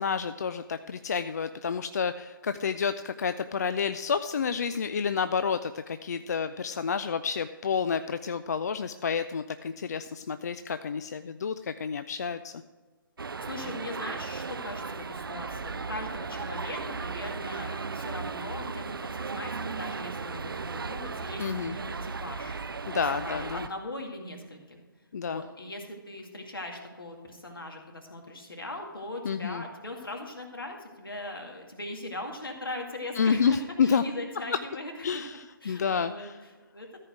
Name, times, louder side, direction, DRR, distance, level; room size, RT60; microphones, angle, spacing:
voice 1, 0.0-12.6 21.4-21.7 22.9-23.7 25.1-25.4 29.3-29.6 33.2-34.0 35.0-35.4 35.7-36.4, left 6 dB, 45° left, 11 dB, 0.3 m, -29 dB
sound 1, 13.2-23.7, right 4 dB, 75° right, 0.4 m, -36 dB
voice 2, 13.4-18.8 19.1-22.6 22.9-24.8 25.2-35.2 35.6-37.0, left 1 dB, 75° left, 2 dB, 2.1 m, -40 dB
14.0 x 4.9 x 6.1 m, 1.3 s
figure-of-eight pair, 140°, 12 cm